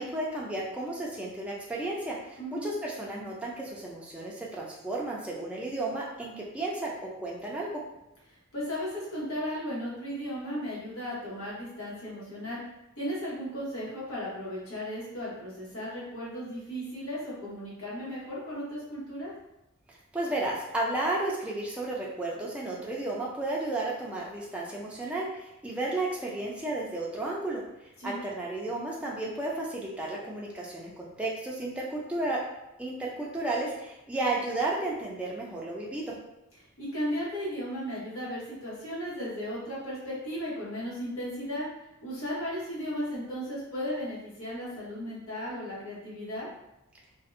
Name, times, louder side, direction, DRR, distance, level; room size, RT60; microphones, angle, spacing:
voice 1, 0.0-7.7 19.9-27.6 28.0-32.4 32.8-36.2, right 2 dB, 5° right, -4 dB, 0.3 m, -33 dB
voice 2, 2.4-2.7 8.5-12.6 13.0-19.3 28.0-28.2 36.8-41.7 42.0-46.5, equal, 80° left, -6 dB, 1.0 m, -35 dB
2.5 x 2.0 x 2.5 m, 0.89 s
head